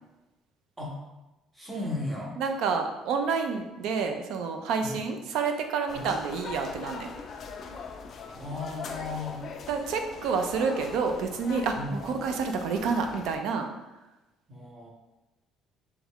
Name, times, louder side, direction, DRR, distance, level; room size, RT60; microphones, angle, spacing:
voice 1, 1.5-2.4 4.8-4.9 6.0-6.1 8.3-9.4 11.8-12.0 14.5-14.9, left 2 dB, 10° right, -2 dB, 0.7 m, -35 dB
voice 2, 2.4-7.1 9.7-13.7, right 5 dB, 65° right, 5 dB, 0.4 m, -29 dB
sound 1, 5.9-13.4, left 5 dB, 35° left, 0.3 m, -41 dB
3.5 x 3.1 x 3.6 m, 1.0 s
cardioid pair, 175°, 0 cm